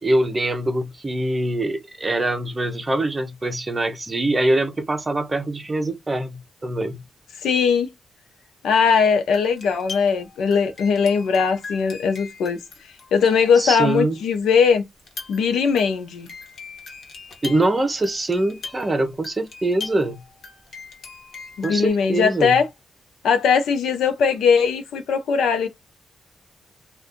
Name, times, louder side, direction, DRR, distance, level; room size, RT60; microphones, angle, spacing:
voice 1, 0.0-7.0 13.6-14.2 17.4-20.2 21.6-22.5, right 2 dB, 20° right, 0.8 m, -23 dB
voice 2, 7.4-7.9 8.6-12.6 13.1-14.8 15.3-16.3 21.6-22.7 23.2-25.7, left 6 dB, 90° left, 0.7 m, -19 dB
sound 1, 9.3-13.9 15.0-21.9, left 4 dB, 60° left, 1.2 m, -40 dB
2.6 x 2.4 x 3.6 m
cardioid pair, 105°, 0 cm